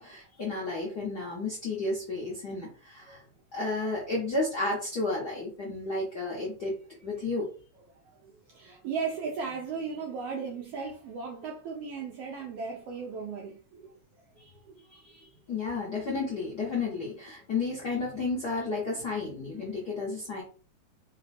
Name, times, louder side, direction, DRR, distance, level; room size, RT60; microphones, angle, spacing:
voice 1, 0.0-3.2 3.5-6.7 7.0-7.5 14.4-14.5 14.9-20.4, left 3 dB, 65° left, 1.0 m, -32 dB
voice 2, 8.1-13.9 14.5-14.9, right 5 dB, 80° right, 1.4 m, -37 dB
4.8 x 2.2 x 4.1 m
omnidirectional pair, 3.4 m